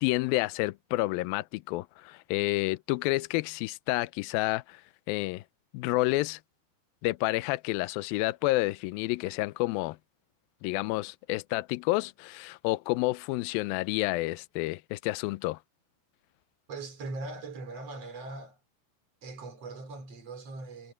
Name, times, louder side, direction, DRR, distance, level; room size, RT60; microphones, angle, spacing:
voice 1, 0.0-4.8 5.1-5.4 5.7-6.4 7.0-10.0 10.6-15.6, left 20 dB, 85° left, 2.2 m, -29 dB
voice 2, 16.7-18.6 19.2-20.9, right 3 dB, 40° right, 4.7 m, -40 dB
omnidirectional pair, 4.8 m